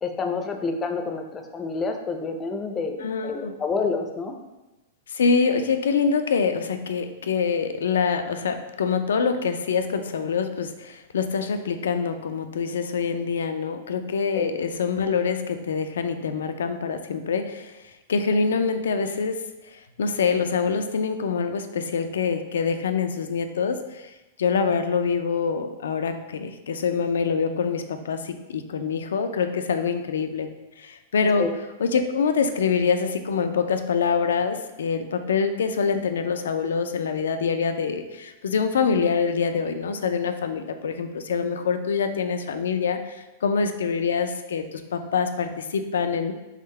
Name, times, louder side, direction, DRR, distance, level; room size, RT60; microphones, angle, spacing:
voice 1, 0.0-4.3 14.3-14.5 31.4-31.5, left 4 dB, 25° left, 4 dB, 0.5 m, -28 dB
voice 2, 3.0-3.5 5.1-17.7 18.1-19.4 19.7-24.1 24.4-30.5 30.8-31.5 31.8-46.3, left 5 dB, 85° left, 8 dB, 0.4 m, -25 dB
3.6 x 3.4 x 3.3 m, 1.1 s
hypercardioid pair, 120°, 0 cm